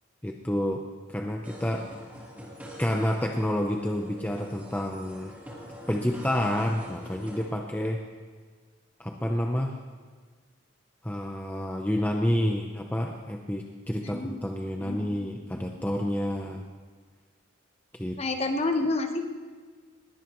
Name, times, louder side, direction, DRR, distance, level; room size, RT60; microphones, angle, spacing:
voice 1, 0.2-0.8 1.1-1.9 2.8-5.3 5.9-8.0 9.0-9.8 11.0-16.7 17.9-18.2, left 1 dB, 10° left, 2 dB, 0.7 m, -29 dB
sound 1, 1.4-7.5, equal, 10° right, 2.9 m, -45 dB
voice 2, 14.0-14.4 14.8-15.3 18.2-19.2, left 2 dB, 30° left, 4 dB, 1.2 m, -29 dB
20.0 x 17.5 x 3.1 m, 1.5 s
head